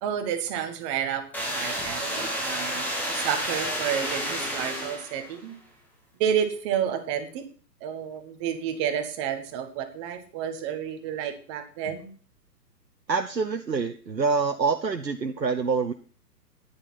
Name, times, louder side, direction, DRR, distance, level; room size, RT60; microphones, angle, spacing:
voice 1, 0.0-5.6 6.1-7.4 7.8-12.1, right 8 dB, 20° right, 8 dB, 1.1 m, -30 dB
sound 1, 1.3-5.4, equal, 5° left, 1.4 m, -30 dB
voice 2, 13.1-15.9, right 4 dB, 85° right, 6 dB, 0.9 m, -26 dB
9.9 x 9.8 x 4.2 m, 0.41 s
figure-of-eight pair, 125°, 49 cm